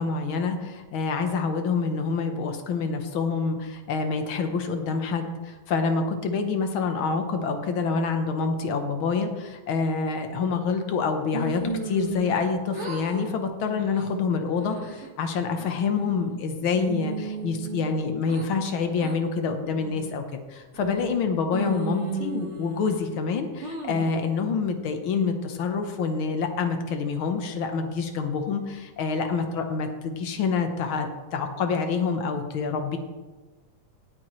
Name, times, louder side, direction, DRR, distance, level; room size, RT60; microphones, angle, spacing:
voice 1, 0.0-33.0, left 5 dB, 65° left, 6 dB, 1.3 m, -27 dB
sound 1, 11.3-12.5 12.7-13.3 13.7-14.0 14.5-15.1 15.6-16.3 16.7-18.5 19.0-19.2 19.7-20.2 20.7-21.2 21.5-23.1 23.6-24.2, right 3 dB, 35° right, 1.1 m, -35 dB
18.0 x 9.0 x 3.2 m, 1.2 s
omnidirectional pair, 3.6 m